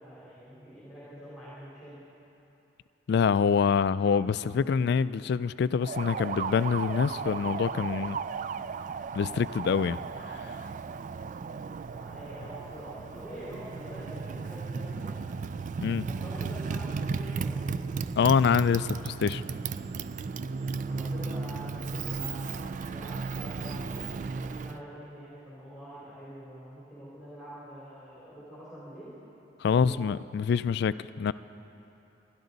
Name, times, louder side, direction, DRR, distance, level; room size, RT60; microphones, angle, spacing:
voice 1, 0.0-2.0 11.8-15.2 16.0-17.7 20.7-24.1 24.3-29.1 29.7-30.0, equal, ahead, -10 dB, 3.1 m, -45 dB
voice 2, 3.1-8.2 9.1-10.0 10.3-10.5 15.8-16.1 18.2-19.4 29.6-31.3, left 6 dB, 55° left, 16 dB, 0.3 m, -25 dB
Motorcycle, 5.8-24.8, right 5 dB, 40° right, 0.3 m, -35 dB
24.0 x 11.5 x 4.0 m, 3.0 s
head